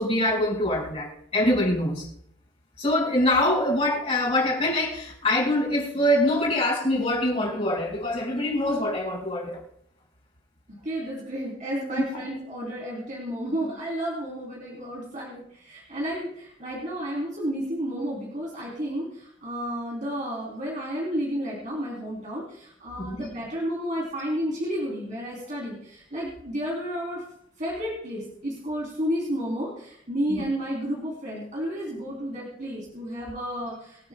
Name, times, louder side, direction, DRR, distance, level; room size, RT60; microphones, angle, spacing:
voice 1, 0.0-2.0 2.8-9.6 23.0-23.2 30.3-30.4, left 1 dB, 35° left, -4 dB, 4.8 m, -24 dB
voice 2, 10.8-27.2 27.6-34.1, equal, 40° right, -4 dB, 3.2 m, -31 dB
25.0 x 8.7 x 2.2 m, 0.71 s
head